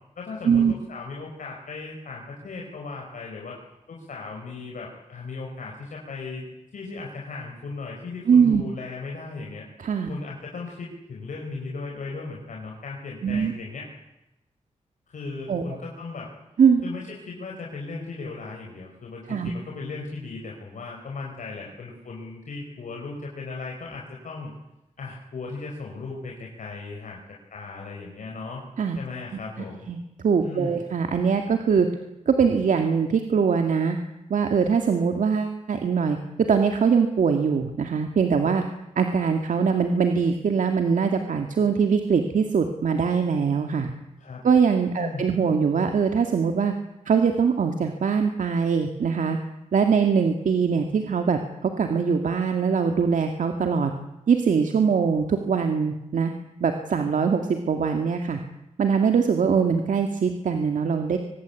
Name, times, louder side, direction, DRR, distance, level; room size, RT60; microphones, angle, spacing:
voice 1, 0.2-3.6 3.9-6.5 6.7-9.6 10.1-13.9 15.1-16.3 16.8-24.5 25.0-27.2 27.5-28.6 29.0-29.9 30.4-30.8 44.2-44.4 45.0-45.4, left 3 dB, 85° left, -1 dB, 5.0 m, -37 dB
voice 2, 8.3-8.6 9.8-10.1 13.2-13.5 15.5-15.6 16.6-16.8 19.3-19.5 28.8-29.0 29.9-31.9 32.3-34.0 34.3-36.2 36.5-38.6 39.0-43.9 44.4-46.7 47.1-49.4 49.7-53.9 54.3-56.3 56.6-58.4 58.8-61.2, right 6 dB, 85° right, 5 dB, 2.2 m, -22 dB
24.5 x 20.5 x 8.5 m, 0.92 s
wide cardioid pair, 180°, 13 cm